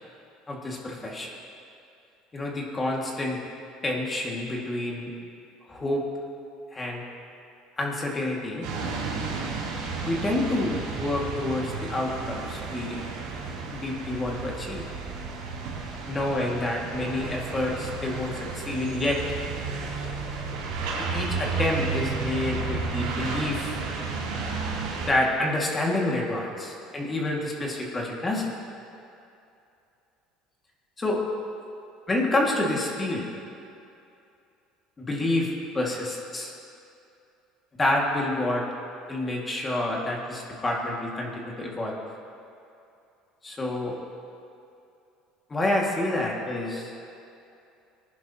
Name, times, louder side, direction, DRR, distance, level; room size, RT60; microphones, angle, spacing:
voice 1, 0.5-1.3 2.3-3.4 3.8-5.1 5.7-6.1 6.7-7.0 7.8-8.7 10.0-13.1 13.7-14.8 16.1-19.2 21.1-23.8 25.0-28.5 31.0-31.2 32.1-33.3 35.0-36.5 37.8-38.7 39.1-42.0 43.4-44.0 45.5-46.9, left 1 dB, 20° left, -2 dB, 2.1 m, -28 dB
sound 1, 8.6-25.1, right 4 dB, 85° right, 3.1 m, -32 dB
20.5 x 10.5 x 2.9 m, 2.7 s
cardioid pair, 120°, 0 cm